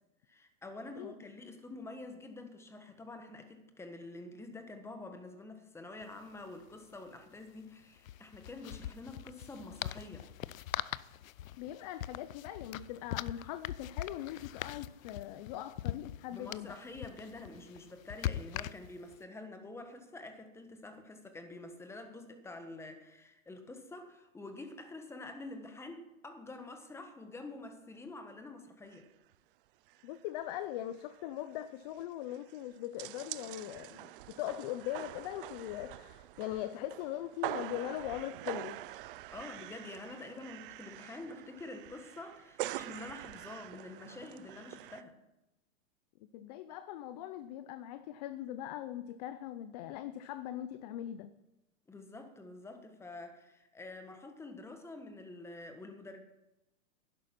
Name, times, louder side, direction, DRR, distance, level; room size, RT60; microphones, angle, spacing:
voice 1, 0.3-10.3 16.3-29.1 39.3-45.2 51.9-56.2, left 2 dB, 5° left, 7 dB, 1.3 m, -47 dB
sound 1, 6.0-6.1 6.3-6.5 8.0-19.2, left 12 dB, 75° left, 0.6 m, -42 dB
voice 2, 11.6-16.8 30.0-38.8 46.3-51.4, left 12 dB, 30° left, 13 dB, 0.5 m, -41 dB
sound 2, 28.9-29.1 29.3-29.4 29.9-30.2 30.5-30.6 30.8-45.0, right 15 dB, 40° right, 0.5 m, -45 dB
11.5 x 11.0 x 5.9 m, 0.95 s
hypercardioid pair, 135°, 40 cm